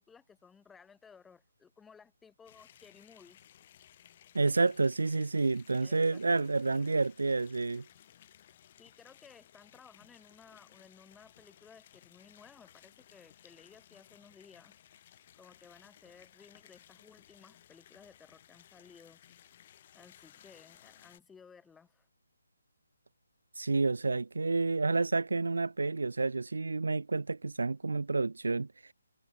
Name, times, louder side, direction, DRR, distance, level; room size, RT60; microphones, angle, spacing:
voice 1, 0.0-3.4 5.8-6.5 8.5-19.4 19.9-22.1, left 6 dB, 5° left, 3.3 m, -58 dB
sound 1, 2.4-21.2, left 11 dB, 30° left, 1.8 m, -60 dB
voice 2, 4.3-7.8 23.6-28.9, right 3 dB, 90° right, 0.7 m, -29 dB
hypercardioid pair, 165°, 0 cm